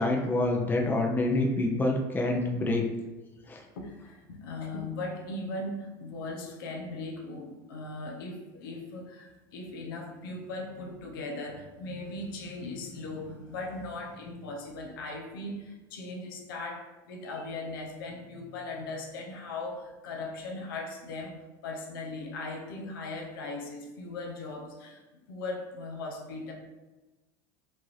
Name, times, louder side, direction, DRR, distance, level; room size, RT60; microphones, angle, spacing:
voice 1, 0.0-2.8 3.5-3.6, left 2 dB, 15° left, 1 dB, 0.6 m, -27 dB
voice 2, 3.7-25.0 25.3-26.5, left 2 dB, 85° left, 0 dB, 0.8 m, -38 dB
4.6 x 2.8 x 3.1 m, 1.1 s
supercardioid pair, 105°, 11 cm